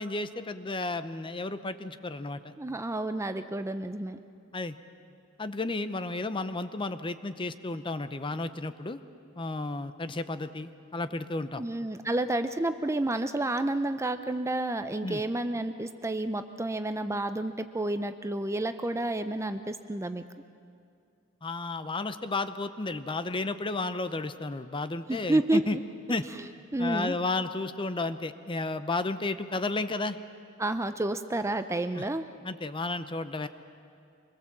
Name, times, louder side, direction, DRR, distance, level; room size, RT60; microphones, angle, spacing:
voice 1, 0.0-2.5 4.5-4.7 5.4-9.0 9.4-11.6 15.0-15.2 21.4-25.8 26.1-26.2 26.8-30.2 32.0-32.1 32.4-33.5, left 2 dB, 25° left, 11 dB, 0.7 m, -32 dB
voice 2, 2.6-4.2 11.6-20.2 25.1-25.8 26.7-27.2 30.6-32.2, right 1 dB, 15° right, 10 dB, 0.5 m, -30 dB
25.0 x 21.0 x 7.4 m, 2.4 s
head